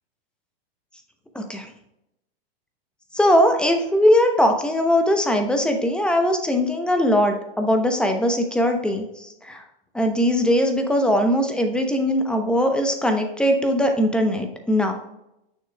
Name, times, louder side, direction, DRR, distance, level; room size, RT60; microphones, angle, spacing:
voice 1, 1.3-1.7 3.1-9.6 9.9-14.9, equal, 5° left, 4 dB, 0.8 m, -20 dB
6.6 x 6.2 x 2.3 m, 0.84 s
hypercardioid pair, 125°, 30 cm